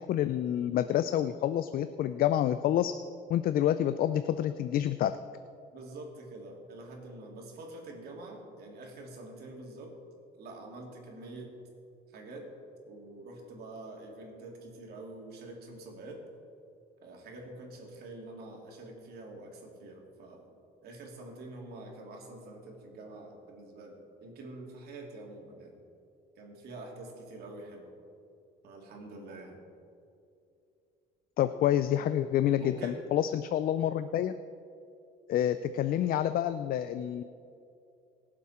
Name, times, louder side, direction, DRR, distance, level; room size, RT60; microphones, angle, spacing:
voice 1, 0.0-3.0 3.3-5.2 31.4-34.3 35.3-37.2, left 11 dB, 60° left, 11 dB, 0.5 m, -28 dB
voice 2, 5.7-9.9 10.4-11.5 12.1-12.5 12.9-16.2 17.0-20.4 20.8-25.7 26.4-27.9 28.6-29.6 32.5-33.0, right 2 dB, 70° right, 0 dB, 3.0 m, -46 dB
22.5 x 7.5 x 4.4 m, 2.6 s
cardioid pair, 110°, 17 cm